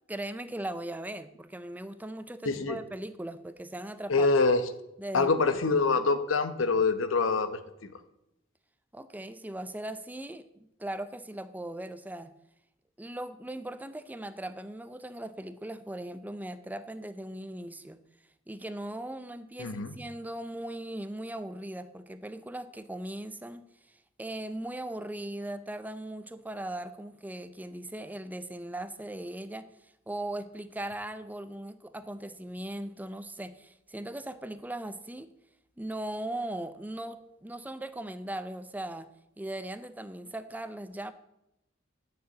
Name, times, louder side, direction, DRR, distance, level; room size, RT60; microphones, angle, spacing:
voice 1, 0.1-4.3 5.0-5.3 8.9-12.3 13.0-18.0 18.5-23.7 24.2-35.3 35.8-39.1 39.4-41.1, right 1 dB, 10° right, 12 dB, 0.5 m, -39 dB
voice 2, 2.4-2.8 4.1-4.6 5.1-7.5 7.8-7.9 19.6-19.9, left 4 dB, 85° left, 11 dB, 0.9 m, -25 dB
9.4 x 6.6 x 7.8 m, 0.87 s
head